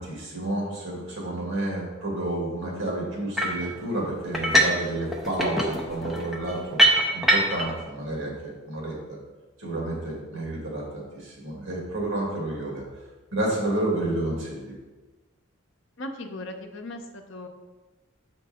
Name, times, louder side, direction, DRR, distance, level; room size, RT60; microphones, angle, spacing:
voice 1, 0.0-6.8 7.1-9.2 9.6-12.8 13.3-14.7, right 1 dB, 70° right, -2 dB, 2.2 m, -30 dB
sound 1, 3.4-3.7 4.3-4.8 5.1-7.7, right 1 dB, ahead, 0.6 m, -22 dB
voice 2, 16.0-17.5, left 1 dB, 60° left, 4 dB, 0.7 m, -37 dB
6.5 x 4.5 x 4.3 m, 1.2 s
head